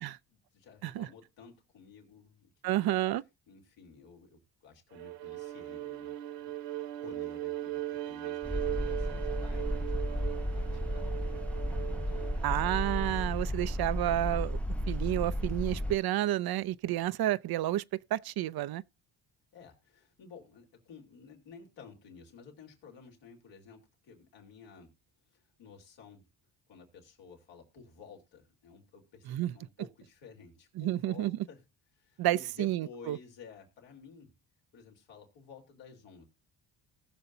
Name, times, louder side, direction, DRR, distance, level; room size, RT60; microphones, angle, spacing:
voice 1, 0.0-3.0 3.5-6.5 7.0-12.6 19.5-24.9 25.3-26.2 26.7-31.6 31.9-34.4 34.7-36.2, left 5 dB, 80° left, 3.6 m, -53 dB
voice 2, 2.6-3.2 12.4-14.6 14.9-17.8 18.1-18.8 29.3-29.5 30.8-31.4 32.2-33.2, right 14 dB, 55° right, 0.6 m, -30 dB
Bowed string instrument, 4.9-13.3, right 15 dB, 70° right, 1.4 m, -39 dB
sound 1, 8.4-16.0, equal, 5° left, 0.6 m, -33 dB
19.0 x 6.7 x 2.7 m
cardioid pair, 80°, 44 cm